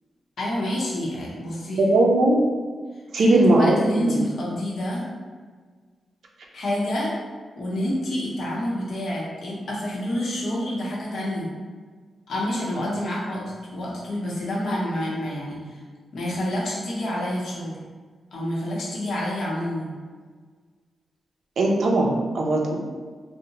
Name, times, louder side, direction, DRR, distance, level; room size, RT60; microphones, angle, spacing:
voice 1, 0.4-1.9 3.2-5.0 6.5-7.1 7.6-11.5 12.3-15.8 16.1-17.8 18.3-20.0, left 1 dB, 70° left, -5 dB, 0.7 m, -28 dB
voice 2, 1.8-2.4 3.1-3.8 4.1-4.2 21.6-22.8, right 2 dB, 75° right, -1 dB, 0.4 m, -19 dB
2.6 x 2.0 x 2.8 m, 1.5 s
wide cardioid pair, 115°, 0 cm